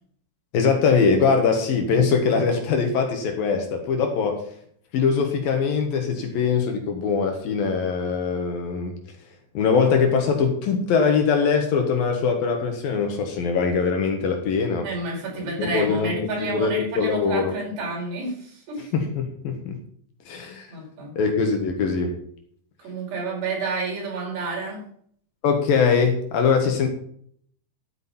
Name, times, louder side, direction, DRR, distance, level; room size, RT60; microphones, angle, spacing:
voice 1, 0.5-4.5 4.9-9.0 9.5-14.9 15.6-16.1 16.4-17.5 18.9-19.8 20.3-20.7 21.2-22.2 25.4-26.9, left 5 dB, 65° left, 4 dB, 3.0 m, -22 dB
voice 2, 14.8-18.9 20.7-21.1 22.8-24.9, right 3 dB, 70° right, -2 dB, 6.8 m, -30 dB
12.5 x 9.2 x 4.3 m, 0.63 s
omnidirectional pair, 4.9 m